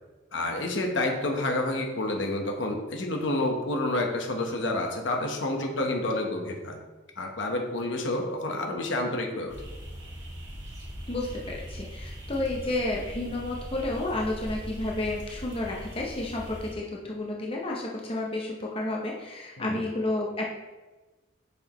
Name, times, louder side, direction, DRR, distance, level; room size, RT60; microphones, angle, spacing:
voice 1, 0.3-6.8 7.2-9.6 19.6-19.8, left 2 dB, 75° left, 2 dB, 1.1 m, -29 dB
sound 1, 9.5-16.7, equal, 70° right, 2.0 m, -40 dB
voice 2, 11.1-20.5, left 2 dB, 30° left, -2 dB, 0.8 m, -31 dB
7.0 x 6.2 x 3.1 m, 1.2 s
head